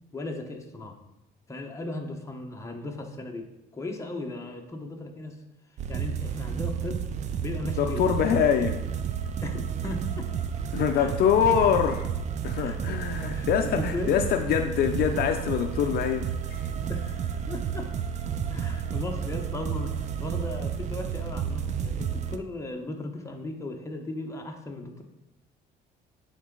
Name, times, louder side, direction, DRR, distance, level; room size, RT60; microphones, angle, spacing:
voice 1, 0.1-1.0 1.5-3.5 3.7-5.4 5.9-7.1 7.4-8.5 9.4-10.3 10.9-11.1 12.6-14.2 16.9-18.0 18.5-25.0, left 2 dB, 15° left, 2 dB, 1.0 m, -37 dB
sound 1, 5.8-22.4, right 8 dB, 45° right, 0.5 m, -31 dB
voice 2, 7.8-8.8 10.7-12.1 12.4-16.7, left 8 dB, 65° left, 6 dB, 0.5 m, -24 dB
9.4 x 4.0 x 3.8 m, 0.89 s
cardioid pair, 110°, 17 cm